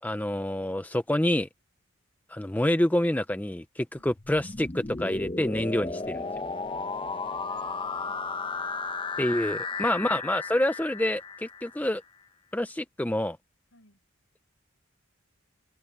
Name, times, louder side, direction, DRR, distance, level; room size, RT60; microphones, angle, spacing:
voice 1, 0.0-1.5 2.3-6.2 9.2-12.0 12.5-13.4, left 1 dB, 10° left, 0.5 m, -27 dB
sound 1, 4.2-12.0, left 4 dB, 25° left, 0.9 m, -34 dB
voice 2, 6.7-8.2 13.7-14.0, left 2 dB, 70° left, 7.4 m, -62 dB
open air
head